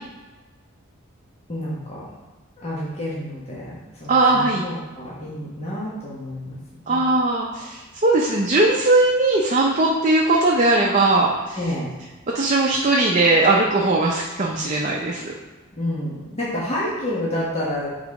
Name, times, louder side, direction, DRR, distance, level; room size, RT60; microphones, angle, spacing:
voice 1, 1.5-2.1 2.6-6.6 6.9-7.0 11.5-11.9 15.7-18.0, left 1 dB, 30° left, -7 dB, 1.2 m, -29 dB
voice 2, 4.1-4.6 6.9-11.6 12.3-15.3, right 2 dB, 35° right, -2 dB, 0.6 m, -19 dB
7.1 x 4.0 x 4.8 m, 1.2 s
head